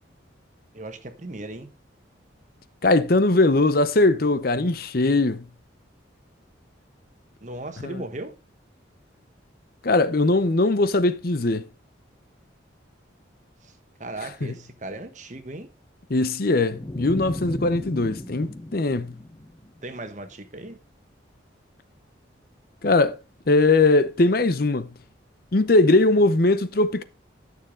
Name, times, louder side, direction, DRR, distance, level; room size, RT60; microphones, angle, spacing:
voice 1, 0.7-1.7 7.4-8.3 13.6-13.7 14.0-15.7 19.8-20.8, right 2 dB, 40° right, 1.3 m, -37 dB
voice 2, 2.8-5.4 7.8-8.0 9.8-11.7 14.4-14.5 16.1-19.1 22.8-23.2 23.5-24.9 25.5-27.0, left 2 dB, 50° left, 0.7 m, -20 dB
sound 1, 16.7-20.0, left 1 dB, 20° left, 1.0 m, -36 dB
12.0 x 6.9 x 3.8 m
head